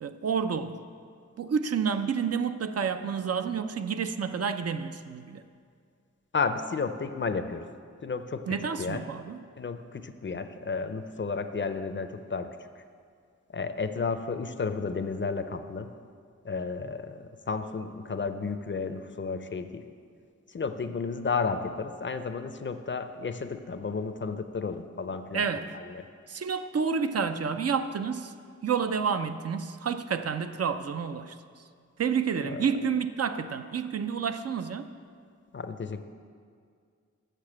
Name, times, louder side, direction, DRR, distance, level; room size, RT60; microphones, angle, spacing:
voice 1, 0.0-0.8 1.4-5.4 8.5-9.4 25.3-25.7 26.3-28.3 28.6-31.4 32.0-34.9, right 6 dB, 55° right, 10 dB, 0.4 m, -29 dB
voice 2, 6.3-7.6 8.0-8.4 8.8-9.0 9.6-12.5 13.5-15.9 16.4-19.8 20.5-25.4 25.9-26.0 32.4-32.6 35.5-36.0, left 4 dB, 40° left, 9 dB, 0.5 m, -32 dB
6.7 x 6.5 x 7.3 m, 2.1 s
wide cardioid pair, 80°, 29 cm